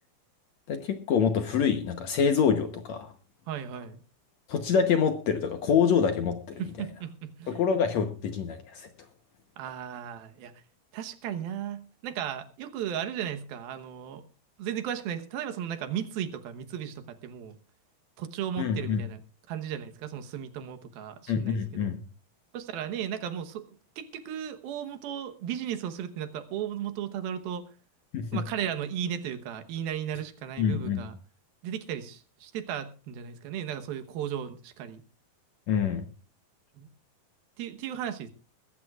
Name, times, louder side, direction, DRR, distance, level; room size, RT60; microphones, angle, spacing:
voice 1, 0.7-3.1 4.5-6.4 7.5-8.9 18.6-19.0 21.3-22.0 28.1-28.4 30.6-31.1 35.7-36.0, left 7 dB, 65° left, 7 dB, 1.8 m, -26 dB
voice 2, 3.5-4.0 6.6-7.6 9.6-10.5 10.9-14.2 14.6-17.6 18.2-19.2 19.5-21.9 22.5-27.7 28.3-31.1 31.6-35.0 36.8-36.9 37.6-38.3, right 9 dB, 80° right, 8 dB, 3.0 m, -35 dB
21.5 x 14.5 x 2.4 m, 0.35 s
omnidirectional pair, 4.2 m